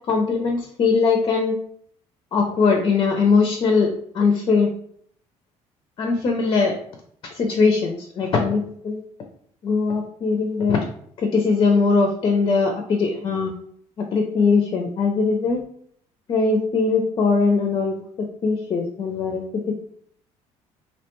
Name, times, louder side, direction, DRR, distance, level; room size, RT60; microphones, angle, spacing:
voice 1, 0.1-1.5 2.3-4.7 6.0-6.8 7.3-9.0 9.6-10.9 11.2-13.5 14.0-15.6 16.3-18.0 18.4-19.7, left 4 dB, 35° left, 3 dB, 0.4 m, -20 dB
2.8 x 2.1 x 2.9 m, 0.64 s
cardioid pair, 135°, 12 cm